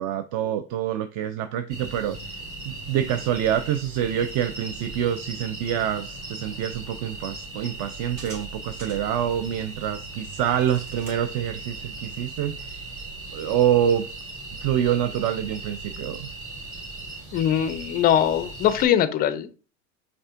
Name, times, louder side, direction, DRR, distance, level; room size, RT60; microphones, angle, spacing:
voice 1, 0.0-12.9 13.3-14.1 14.6-16.3, right 10 dB, 45° right, 9 dB, 0.4 m, -26 dB
sound 1, 1.7-18.9, right 2 dB, 70° right, 2.4 m, -38 dB
voice 2, 17.3-19.5, left 10 dB, 25° left, 14 dB, 0.3 m, -22 dB
5.3 x 3.5 x 2.4 m, 0.36 s
hypercardioid pair, 95°, 40 cm